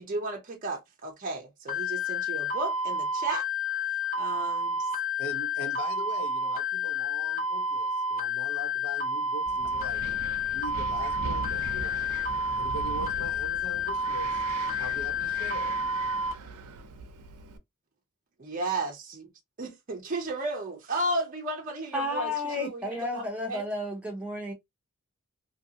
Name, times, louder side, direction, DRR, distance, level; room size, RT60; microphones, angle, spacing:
voice 1, 0.0-3.4 4.2-4.9 18.4-19.3 19.6-22.8 23.1-23.2 23.5-23.6, right 2 dB, 35° right, 0.5 m, -33 dB
sound 1, 1.7-16.3, left 2 dB, 35° left, 0.8 m, -30 dB
voice 2, 5.2-10.0 10.5-12.0 12.6-14.4 14.8-15.8, left 1 dB, 80° left, 0.8 m, -41 dB
Wind, 9.5-17.6, right 4 dB, 85° right, 0.6 m, -40 dB
voice 3, 21.9-24.5, left 2 dB, 5° right, 0.8 m, -32 dB
2.7 x 2.6 x 2.8 m
head